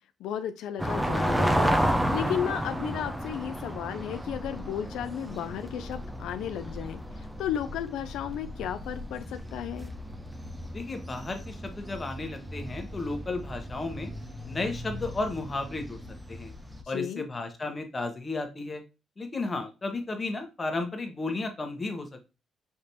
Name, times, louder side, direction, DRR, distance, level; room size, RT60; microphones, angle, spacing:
voice 1, 0.2-1.7 2.1-9.9 16.8-17.3, left 9 dB, 85° left, 9 dB, 0.3 m, -34 dB
sound 1, 0.8-16.8, equal, 10° right, 0.7 m, -33 dB
voice 2, 10.7-14.1 14.4-16.0 16.3-16.5 16.9-18.8 19.2-22.3, left 3 dB, 30° left, 5 dB, 1.2 m, -33 dB
5.8 x 3.2 x 2.8 m, 0.29 s
cardioid pair, 90°, 0 cm